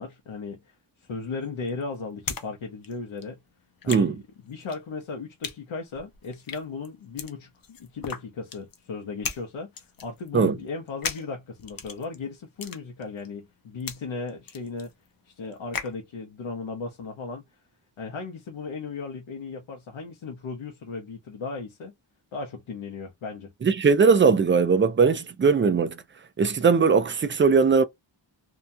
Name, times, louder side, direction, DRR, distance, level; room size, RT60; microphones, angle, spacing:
voice 1, 0.0-3.4 3.8-4.2 4.5-9.7 10.0-14.9 15.2-17.4 18.0-21.9 22.3-23.5, left 4 dB, 80° left, 0.8 m, -36 dB
sound 1, 1.0-2.5 2.7-16.0, left 6 dB, 45° left, 0.6 m, -38 dB
voice 2, 23.6-26.0 26.4-27.8, right 5 dB, 25° right, 0.4 m, -19 dB
2.8 x 2.3 x 2.6 m
wide cardioid pair, 120°, 47 cm